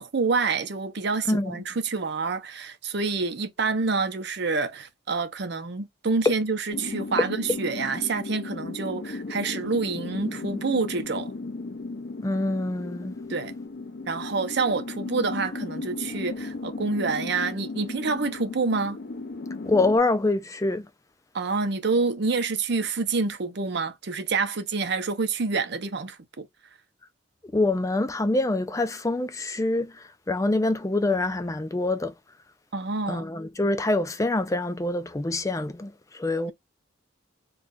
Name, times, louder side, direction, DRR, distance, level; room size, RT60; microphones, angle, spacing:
voice 1, 0.0-11.3 13.3-13.5 14.1-19.0 21.3-26.5 32.7-33.3, right 4 dB, 60° right, 0.6 m, -27 dB
sound 1, 6.7-20.0, left 3 dB, 55° left, 0.7 m, -35 dB
voice 2, 12.2-13.2 19.7-20.9 27.5-32.1 33.1-36.5, left 2 dB, 15° left, 0.4 m, -25 dB
2.4 x 2.3 x 3.8 m
head